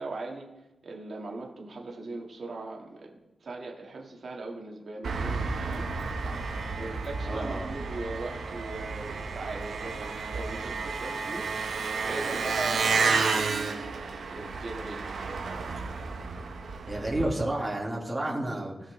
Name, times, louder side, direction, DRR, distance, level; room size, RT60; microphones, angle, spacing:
voice 1, 0.0-5.9 6.7-11.4 12.0-15.6, right 3 dB, 65° right, -1 dB, 2.0 m, -40 dB
Engine, 5.0-17.2, right 4 dB, 90° right, 1.2 m, -31 dB
voice 2, 7.2-7.7 16.9-18.9, right 1 dB, 15° right, -3 dB, 2.3 m, -31 dB
17.5 x 5.9 x 3.3 m, 1.0 s
cardioid pair, 75°, 0 cm